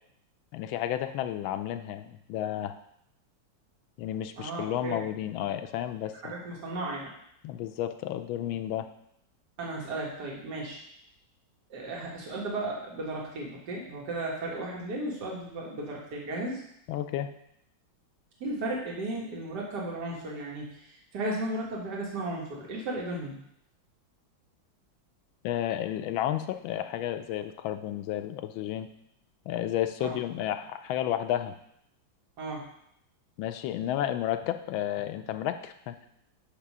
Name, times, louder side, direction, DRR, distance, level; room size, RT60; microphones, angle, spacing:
voice 1, 0.5-2.7 4.0-6.3 7.4-8.9 16.9-17.3 25.4-28.9 29.5-31.5 33.4-36.0, left 11 dB, 85° left, 9 dB, 1.4 m, -32 dB
voice 2, 4.4-5.0 6.2-7.1 9.6-10.8 11.7-16.6 18.4-23.4 30.0-30.2 32.4-32.7, right 2 dB, 60° right, -3 dB, 2.0 m, -35 dB
8.3 x 3.0 x 6.0 m, 0.74 s
omnidirectional pair, 2.2 m